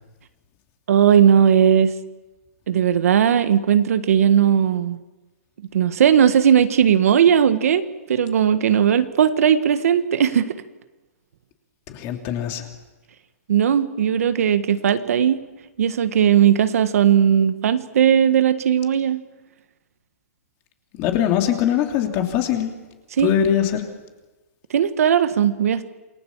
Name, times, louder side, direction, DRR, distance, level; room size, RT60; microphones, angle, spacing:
voice 1, 0.9-1.9 2.7-5.0 5.7-7.8 8.1-10.5 13.5-15.4 15.8-19.2 23.2-23.3 24.7-25.8, right 8 dB, 70° right, 10 dB, 1.6 m, -17 dB
voice 2, 11.9-12.7 20.9-22.7 23.2-23.8, left 10 dB, 30° left, 4 dB, 3.2 m, -22 dB
28.0 x 21.0 x 7.4 m, 1.2 s
hypercardioid pair, 155°, 8 cm